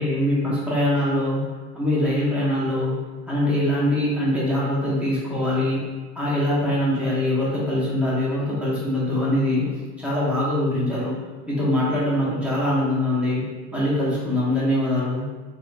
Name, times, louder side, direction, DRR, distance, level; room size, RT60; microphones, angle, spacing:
voice 1, 0.0-3.0 3.3-5.8 6.1-11.2 11.5-15.3, left 1 dB, 5° right, -8 dB, 1.1 m, -23 dB
3.5 x 2.7 x 2.2 m, 1.3 s
hypercardioid pair, 100°, 46 cm